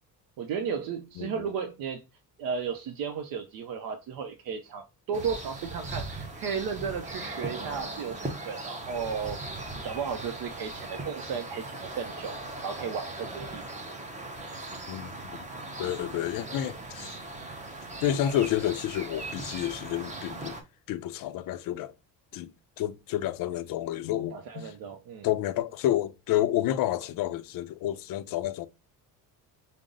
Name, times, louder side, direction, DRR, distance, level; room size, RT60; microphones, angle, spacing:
voice 1, 0.4-2.0 2.4-9.4 9.7-12.3 12.6-13.8 15.8-15.9 24.3-25.3, right 6 dB, 65° right, 0.6 m, -34 dB
sound 1, 5.1-20.6, right 2 dB, 20° right, 0.7 m, -39 dB
voice 2, 15.8-17.2 18.0-20.5 20.9-21.9 22.3-22.5 22.8-24.7 25.2-28.7, left 12 dB, 65° left, 0.5 m, -29 dB
5.0 x 2.0 x 3.8 m
cardioid pair, 145°, 37 cm